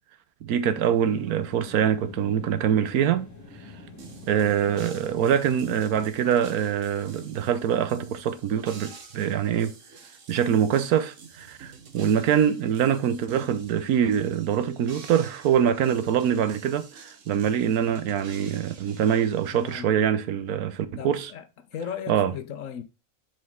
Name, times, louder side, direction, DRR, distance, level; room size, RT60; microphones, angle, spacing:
voice 1, 0.4-3.3 4.3-9.7 10.3-21.3 22.1-22.3, right 9 dB, 85° right, 1.2 m, -24 dB
sound 1, 0.9-6.1, left 4 dB, 10° left, 1.3 m, -45 dB
sound 2, 4.0-19.8, right 5 dB, 60° right, 1.5 m, -48 dB
voice 2, 19.5-20.2 20.9-21.5 21.7-22.8, left 8 dB, 65° left, 1.0 m, -37 dB
5.9 x 5.2 x 3.6 m
omnidirectional pair, 1.5 m